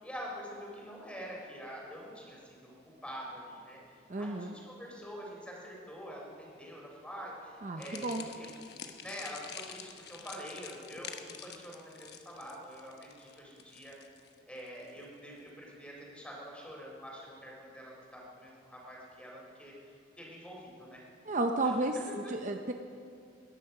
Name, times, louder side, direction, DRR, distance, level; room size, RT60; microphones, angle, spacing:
voice 1, 0.0-2.7 3.0-3.8 4.2-8.5 9.0-14.0 14.5-19.7 20.2-21.0 22.1-22.3, equal, 5° left, -3 dB, 3.7 m, -46 dB
voice 2, 4.1-4.5 7.6-8.3 21.2-22.0 22.3-22.7, right 2 dB, 45° right, 5 dB, 0.7 m, -32 dB
sound 1, 7.8-15.0, left 7 dB, 60° left, 1.0 m, -48 dB
20.5 x 10.5 x 5.9 m, 2.3 s
head